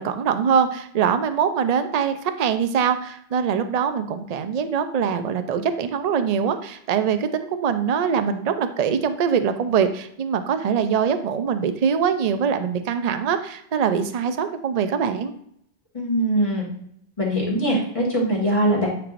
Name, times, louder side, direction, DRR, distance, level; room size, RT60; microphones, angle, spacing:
voice 1, 0.0-15.3, right 7 dB, 50° right, 9 dB, 0.5 m, -23 dB
voice 2, 15.9-16.7 17.2-18.9, right 1 dB, 30° left, -4 dB, 2.2 m, -22 dB
9.0 x 4.7 x 2.5 m, 0.69 s
omnidirectional pair, 1.1 m